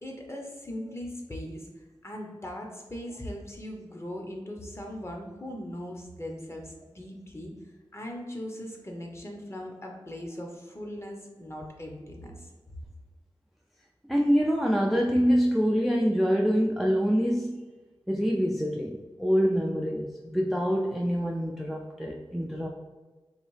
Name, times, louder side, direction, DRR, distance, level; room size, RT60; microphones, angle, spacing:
voice 1, 0.0-7.5 7.9-12.5, equal, 25° left, 1 dB, 0.8 m, -39 dB
voice 2, 14.1-17.6 18.1-22.7, equal, ahead, 0 dB, 0.3 m, -25 dB
4.0 x 2.7 x 3.2 m, 1.3 s
wide cardioid pair, 60°, 10 cm